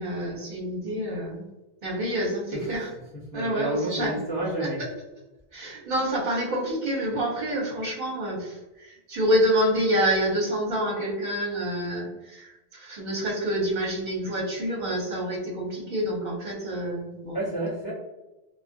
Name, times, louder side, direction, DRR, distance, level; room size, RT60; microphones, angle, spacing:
voice 1, 0.0-1.5 1.8-2.9 3.3-4.3 4.6-4.7 5.5-17.4, equal, 50° right, -4 dB, 1.0 m, -27 dB
voice 2, 3.3-4.8 17.3-17.9, right 1 dB, 30° left, -6 dB, 0.5 m, -30 dB
2.4 x 2.3 x 2.5 m, 1.0 s
omnidirectional pair, 1.1 m